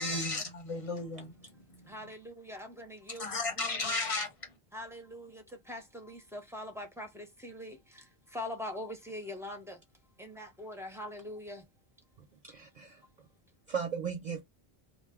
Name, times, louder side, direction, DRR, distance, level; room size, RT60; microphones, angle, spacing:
voice 1, 0.0-1.3 1.8-1.9 3.1-4.5, left 2 dB, 35° left, 0.8 m, -34 dB
voice 2, 1.9-4.0 4.7-9.8 10.2-11.6, left 1 dB, 5° right, 0.5 m, -43 dB
voice 3, 12.2-13.0 13.7-14.5, right 7 dB, 50° right, 0.6 m, -37 dB
2.5 x 2.2 x 3.5 m
omnidirectional pair, 1.1 m